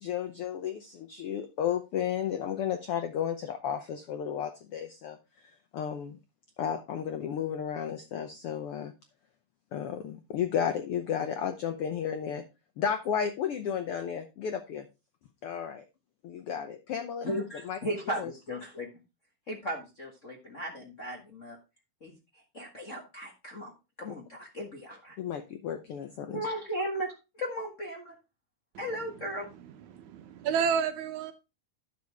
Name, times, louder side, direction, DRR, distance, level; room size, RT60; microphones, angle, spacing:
voice 1, 0.0-6.2 6.6-8.9 9.7-12.4 12.8-14.9 15.4-15.8 16.2-17.3 17.6-17.8 18.2-18.3 25.2-26.5, left 8 dB, 80° left, 1.3 m, -33 dB
voice 2, 17.2-18.9 19.5-21.6 22.0-22.1 22.5-23.7 24.0-25.2 26.3-28.1 28.8-29.5, equal, 40° left, 1.1 m, -36 dB
voice 3, 28.7-31.3, right 7 dB, 70° right, 2.2 m, -32 dB
10.5 x 6.9 x 3.5 m
omnidirectional pair, 3.6 m